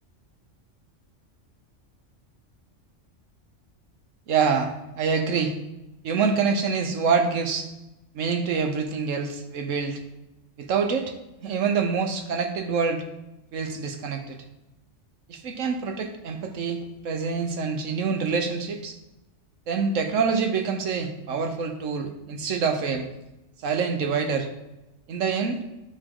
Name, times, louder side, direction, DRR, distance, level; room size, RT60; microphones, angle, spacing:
voice 1, 4.3-5.5 6.0-7.7 8.1-10.0 10.6-11.1 11.4-13.0 13.5-14.4 15.3-19.0 19.7-23.1 23.6-24.5 25.1-25.6, right 5 dB, 90° right, 6 dB, 1.2 m, -26 dB
10.5 x 4.9 x 3.7 m, 0.96 s
omnidirectional pair, 1.3 m